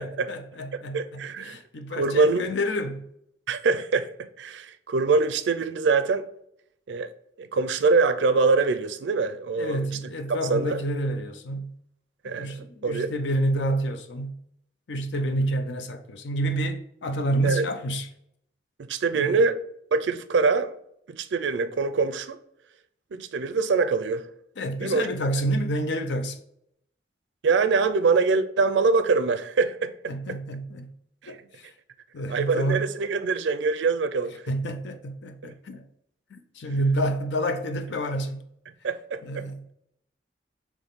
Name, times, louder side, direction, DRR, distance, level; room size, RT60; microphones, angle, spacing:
voice 1, 0.0-3.1 9.6-11.7 12.4-14.3 14.9-18.1 19.1-19.4 24.6-26.4 30.1-30.9 31.3-31.7 32.1-32.9 34.5-35.8 36.5-38.4 39.2-39.6, right 1 dB, 80° left, 0.6 m, -28 dB
voice 2, 0.9-1.6 2.0-2.5 3.5-4.1 4.4-6.3 6.9-7.1 7.4-9.9 10.5-10.8 12.2-13.1 17.4-17.7 18.8-19.6 19.9-20.8 21.1-22.4 23.1-24.3 24.8-25.1 27.4-30.1 31.2-31.4 32.3-34.4 35.4-35.5 38.8-39.4, right 4 dB, 85° right, 0.4 m, -24 dB
3.6 x 3.0 x 3.9 m
head